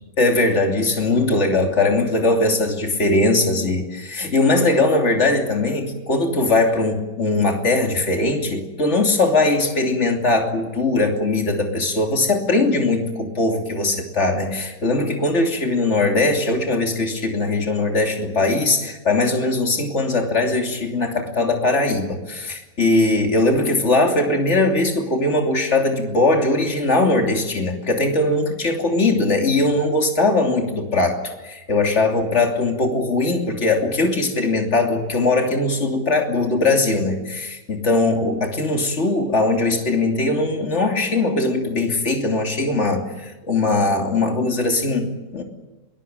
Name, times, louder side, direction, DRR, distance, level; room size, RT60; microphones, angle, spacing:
voice 1, 0.2-45.4, left 2 dB, 40° left, 3 dB, 3.3 m, -20 dB
22.5 x 21.0 x 9.1 m, 1.1 s
omnidirectional pair, 1.9 m